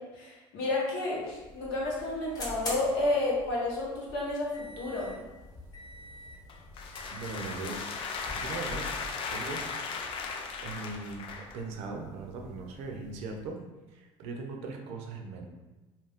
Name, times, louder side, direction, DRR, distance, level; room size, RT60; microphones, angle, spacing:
voice 1, 0.0-5.2, left 2 dB, 80° left, -4 dB, 1.0 m, -31 dB
sound 1, 1.2-13.6, left 1 dB, 35° left, 0.9 m, -46 dB
sound 2, 6.5-11.6, left 5 dB, 55° left, 0.4 m, -37 dB
voice 2, 7.1-7.9 8.3-8.9 9.3-9.7 10.6-13.6 13.9-15.5, right 3 dB, 70° right, 3 dB, 0.5 m, -39 dB
2.4 x 2.4 x 3.4 m, 1.1 s
supercardioid pair, 95°, 11 cm